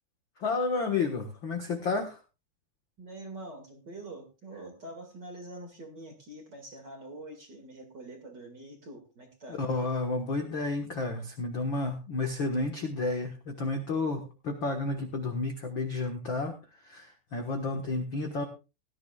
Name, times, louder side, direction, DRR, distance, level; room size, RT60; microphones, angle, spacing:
voice 1, 0.4-2.2 9.6-16.6 16.8-18.4, left 3 dB, 75° left, 4 dB, 1.1 m, -31 dB
voice 2, 3.0-9.6, right 2 dB, 35° right, 4 dB, 2.1 m, -45 dB
18.0 x 13.5 x 2.4 m, 0.30 s
omnidirectional pair, 4.7 m